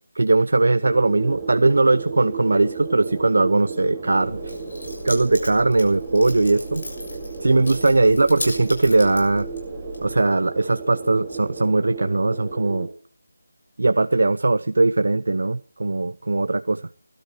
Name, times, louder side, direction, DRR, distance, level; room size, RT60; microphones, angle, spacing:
voice 1, 0.2-4.5 5.0-6.8 7.4-9.5 10.0-12.9 13.8-16.8, right 2 dB, 70° right, 12 dB, 0.6 m, -19 dB
sound 1, 0.8-12.9, right 5 dB, 15° right, 2.3 m, -34 dB
Keys jangling, 4.2-10.2, left 1 dB, 65° left, 7.2 m, -36 dB
19.5 x 13.0 x 4.6 m, 0.41 s
figure-of-eight pair, 165°, 0 cm